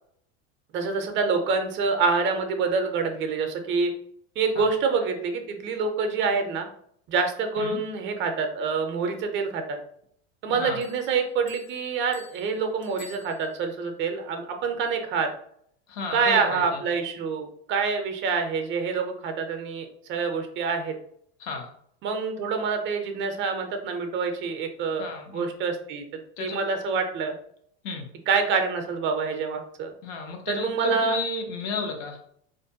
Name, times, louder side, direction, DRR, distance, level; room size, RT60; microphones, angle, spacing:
voice 1, 0.7-3.9 4.4-6.7 7.1-9.8 10.4-15.3 16.1-21.0 22.0-26.0 26.4-27.3 28.3-29.9 30.5-31.2, right 5 dB, 40° right, 5 dB, 0.5 m, -26 dB
voice 2, 10.5-10.8 15.9-16.8 21.4-21.7 25.0-25.5 26.4-26.6 27.8-28.1 30.0-32.2, left 3 dB, 70° left, 3 dB, 0.8 m, -32 dB
sound 1, 10.8-13.8, left 5 dB, 35° left, 0.7 m, -51 dB
2.4 x 2.1 x 2.6 m, 0.66 s
supercardioid pair, 110°, 31 cm